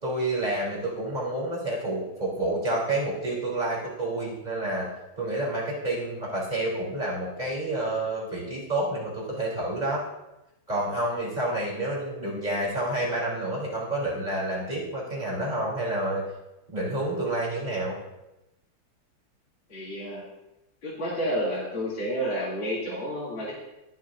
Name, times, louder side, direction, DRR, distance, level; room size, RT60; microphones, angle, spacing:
voice 1, 0.0-10.0 10.7-16.2 16.7-18.0, right 1 dB, 20° right, -6 dB, 3.8 m, -29 dB
voice 2, 19.7-20.2 20.8-23.6, equal, 60° left, -8 dB, 3.7 m, -30 dB
22.5 x 7.6 x 2.7 m, 0.95 s
omnidirectional pair, 2.4 m